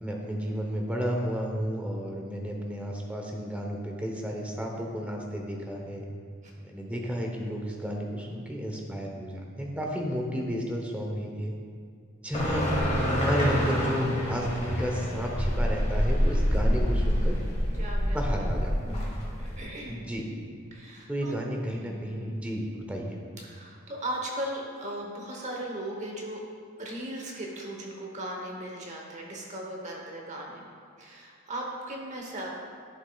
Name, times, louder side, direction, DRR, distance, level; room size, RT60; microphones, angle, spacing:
voice 1, 0.0-6.1 6.6-11.5 12.2-12.7 13.1-17.4 18.0-19.1 19.9-20.3 21.1-23.2, equal, 5° right, 0 dB, 0.8 m, -32 dB
sound 1, 12.3-19.6, equal, 30° left, 1.9 m, -27 dB
voice 2, 17.7-18.5 18.8-19.1 19.4-20.0 20.7-21.4 21.8-22.3 23.4-26.4 26.8-30.6 31.0-32.5, right 1 dB, 35° right, -1 dB, 1.0 m, -38 dB
11.0 x 7.0 x 2.3 m, 2.2 s
head